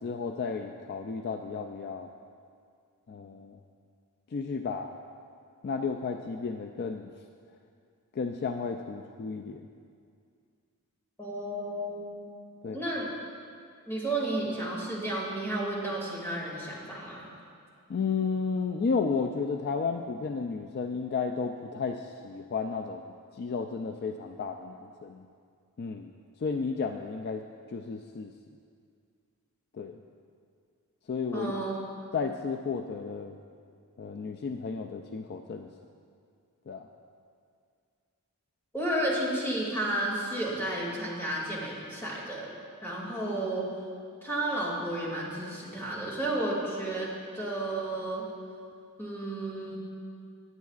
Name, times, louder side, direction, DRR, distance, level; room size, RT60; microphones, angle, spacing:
voice 1, 0.0-2.1 3.1-3.6 4.3-5.0 5.6-7.1 8.2-9.6 12.6-12.9 17.9-25.3 25.8-26.1 26.4-27.4 27.7-28.3 29.7-30.0 31.1-31.5 32.1-33.3 34.0-35.7 36.7-36.9, left 5 dB, 45° left, 5 dB, 0.3 m, -33 dB
voice 2, 11.2-12.1 12.7-13.1 13.9-17.3 31.3-31.8 38.7-42.5 42.8-43.7 44.2-48.3 49.0-49.8, right 1 dB, 10° left, -5 dB, 2.3 m, -32 dB
17.5 x 9.4 x 2.4 m, 2.3 s
head